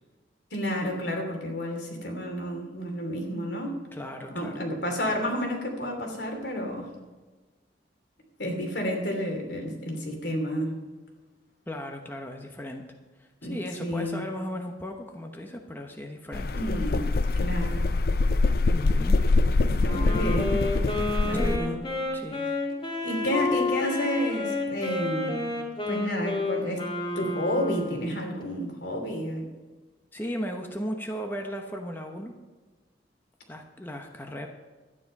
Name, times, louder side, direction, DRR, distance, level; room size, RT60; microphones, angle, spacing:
voice 1, 0.5-3.8 4.3-6.9 8.4-10.8 13.4-14.2 16.5-17.1 17.4-17.8 19.6-20.6 21.2-21.8 23.0-25.4 25.9-26.8 27.1-29.5, equal, 75° left, 2 dB, 3.0 m, -30 dB
voice 2, 3.9-4.6 11.7-12.8 13.2-16.5 18.7-19.2 21.3-21.8 22.1-22.5 30.1-32.3 33.5-34.5, equal, 10° left, 3 dB, 1.0 m, -36 dB
sound 1, 16.3-21.6, left 3 dB, 55° left, 0.5 m, -24 dB
Wind instrument woodwind instrument, 19.9-28.1, left 2 dB, 30° left, 2.3 m, -30 dB
12.0 x 10.0 x 5.4 m, 1.3 s
head